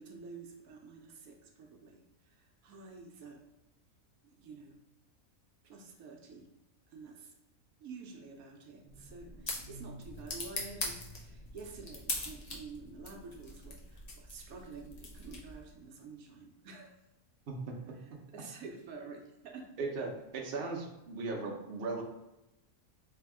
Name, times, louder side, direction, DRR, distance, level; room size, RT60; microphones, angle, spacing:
voice 1, 0.0-3.4 4.4-4.8 5.6-6.5 6.9-7.3 7.8-17.0 17.9-19.7, right 4 dB, 80° right, 2 dB, 1.0 m, -49 dB
sound 1, 8.8-15.7, left 2 dB, 45° left, 0.5 m, -42 dB
voice 2, 19.8-22.0, right 3 dB, 50° right, 0 dB, 0.8 m, -37 dB
3.4 x 2.8 x 3.5 m, 0.95 s
omnidirectional pair, 1.5 m